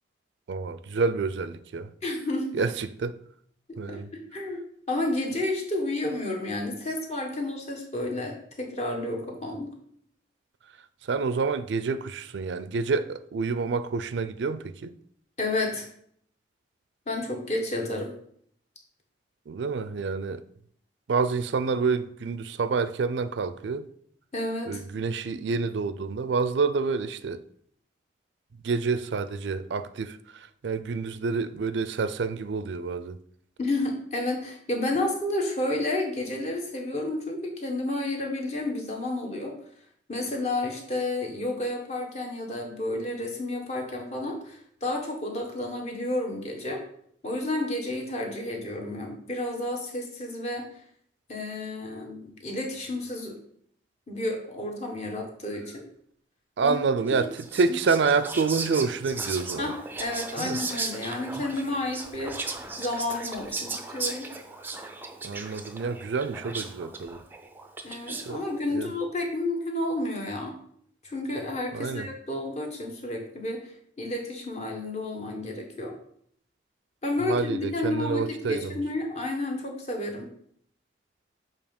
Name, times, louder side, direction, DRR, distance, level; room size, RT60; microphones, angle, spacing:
voice 1, 0.5-1.9 2.5-3.2 3.8-4.1 11.1-14.9 19.5-20.4 21.1-23.8 24.7-27.4 28.6-33.2 56.6-59.7 60.4-60.6 65.2-67.2 68.3-68.4 68.7-68.9 71.7-72.1 77.2-78.8, right 4 dB, 75° right, 0.4 m, -28 dB
voice 2, 2.0-2.6 3.9-4.6 4.9-9.7 15.4-15.9 17.1-18.1 24.3-24.8 33.6-39.5 40.1-46.8 47.2-50.7 51.3-53.4 54.1-55.8 56.6-56.8 59.6-59.7 60.0-62.5 62.8-64.3 67.8-70.6 71.0-75.9 77.0-80.3, left 2 dB, 35° left, 1.1 m, -31 dB
Whispering, 57.1-68.4, right 3 dB, 10° right, 0.4 m, -36 dB
7.0 x 2.8 x 5.2 m
head